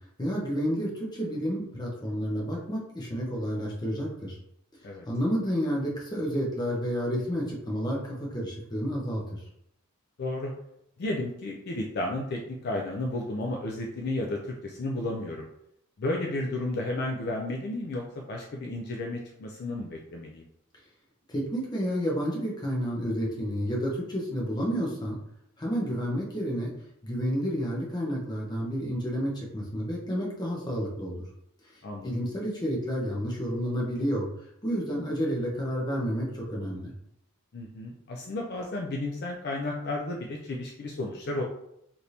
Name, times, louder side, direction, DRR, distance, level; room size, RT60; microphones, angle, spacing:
voice 1, 0.2-4.4 5.1-9.4 21.3-25.2 25.6-26.7 27.0-31.2 32.0-34.3 34.6-36.9, equal, 20° left, -3 dB, 0.7 m, -30 dB
voice 2, 10.2-10.5 11.0-15.5 16.0-20.4 31.8-32.1 37.5-41.4, left 2 dB, 45° left, 0 dB, 0.3 m, -33 dB
3.3 x 2.6 x 2.8 m, 0.77 s
head